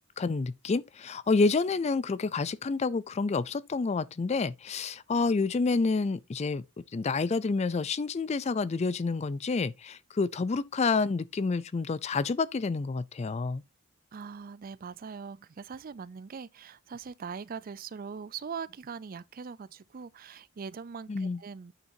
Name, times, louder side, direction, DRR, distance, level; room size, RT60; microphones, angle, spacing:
voice 1, 0.2-6.6 6.9-13.6 21.1-21.4, left 4 dB, 30° left, 0.4 m, -28 dB
voice 2, 14.1-21.7, right 6 dB, 45° right, 0.4 m, -41 dB
8.9 x 6.6 x 2.7 m
head